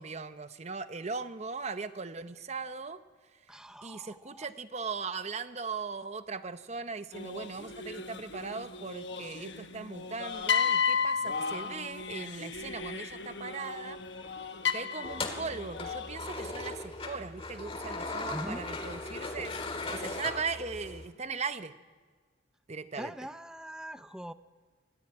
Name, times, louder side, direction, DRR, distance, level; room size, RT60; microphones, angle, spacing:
voice 1, 0.0-3.0 3.8-14.0 14.7-19.5 19.9-21.7 22.7-23.1, right 4 dB, 35° right, 11 dB, 0.8 m, -39 dB
voice 2, 3.5-4.5 18.3-18.6 22.9-24.3, equal, 5° right, 12 dB, 0.6 m, -42 dB
sound 1, 7.1-16.2, left 6 dB, 60° left, 1.3 m, -34 dB
sound 2, 15.0-21.1, left 3 dB, 30° left, 1.9 m, -38 dB
24.5 x 13.5 x 8.8 m, 1.5 s
head